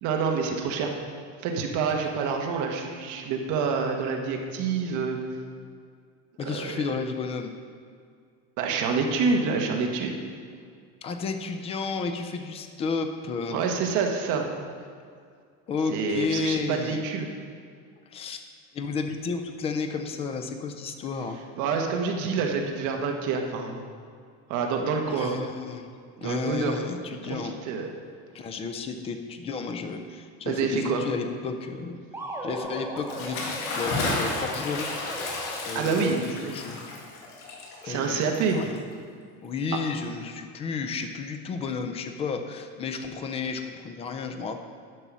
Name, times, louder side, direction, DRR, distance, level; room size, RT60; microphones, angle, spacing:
voice 1, 0.0-0.9 1.4-5.2 6.4-6.8 8.6-10.2 13.5-14.4 15.9-17.3 21.5-23.9 24.5-25.4 26.2-26.8 27.2-27.9 30.5-31.0 35.7-36.5 37.8-38.6, right 5 dB, 50° right, 2 dB, 1.2 m, -27 dB
voice 2, 6.4-7.5 11.0-13.6 15.7-17.0 18.1-18.4 18.7-21.4 25.1-25.9 26.2-27.5 28.3-32.0 32.4-34.9 35.2-36.8 37.8-38.8 39.4-44.6, left 4 dB, 15° left, 7 dB, 0.3 m, -32 dB
sound 1, 32.1-36.0, right 1 dB, 5° right, 0.8 m, -37 dB
Bathtub (filling or washing) / Splash splatter, 33.0-38.9, left 2 dB, 65° left, 1.9 m, -33 dB
11.0 x 5.4 x 6.1 m, 2.2 s
cardioid pair, 170°, 38 cm